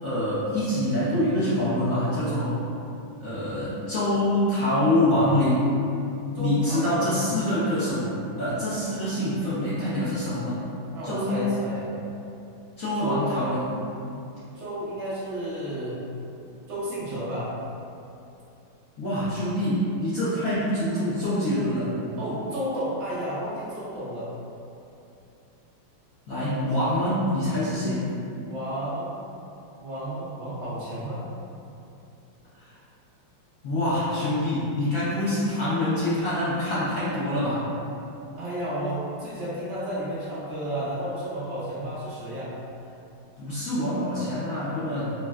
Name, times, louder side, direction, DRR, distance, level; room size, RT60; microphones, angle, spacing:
voice 1, 0.0-2.6 3.2-5.7 6.4-8.1 8.4-10.6 11.0-11.5 12.8-13.7 19.0-22.0 26.3-28.1 33.6-37.6 43.4-45.1, left 1 dB, 70° left, -13 dB, 0.7 m, -25 dB
voice 2, 6.3-7.0 10.9-11.9 13.0-13.4 14.5-16.0 16.7-17.5 22.2-24.3 26.5-26.6 28.4-29.1 29.8-31.2 38.3-42.5, equal, 70° right, -10 dB, 0.6 m, -32 dB
3.7 x 2.1 x 2.3 m, 2.7 s
omnidirectional pair, 2.4 m